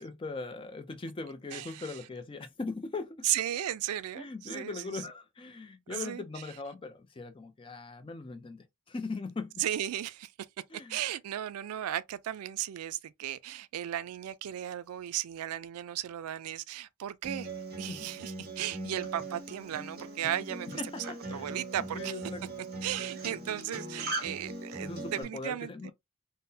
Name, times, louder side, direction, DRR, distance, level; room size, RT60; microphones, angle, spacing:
voice 1, 0.0-3.3 4.2-9.6 10.7-11.0 17.9-18.1 20.7-21.5 21.8-22.7 24.8-25.9, left 3 dB, 25° left, 0.4 m, -40 dB
voice 2, 1.5-2.0 3.2-5.1 5.9-6.4 9.6-10.3 10.9-17.5 17.8-22.2 22.8-25.9, right 11 dB, 85° right, 0.3 m, -35 dB
Acoustic guitar, 17.2-25.2, right 2 dB, 45° right, 1.4 m, -40 dB
3.6 x 2.1 x 2.6 m
head